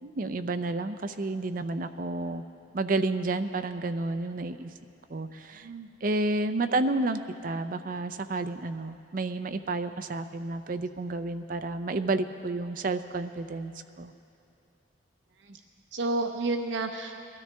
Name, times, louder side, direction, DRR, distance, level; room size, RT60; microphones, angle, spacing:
voice 1, 0.0-2.4 2.7-4.7 5.1-5.7 6.0-14.1, right 2 dB, 50° right, 9 dB, 0.5 m, -30 dB
voice 2, 5.5-5.9 15.4-15.6 15.9-17.3, right 2 dB, 80° right, 4 dB, 0.7 m, -31 dB
21.5 x 13.0 x 3.4 m, 2.8 s
head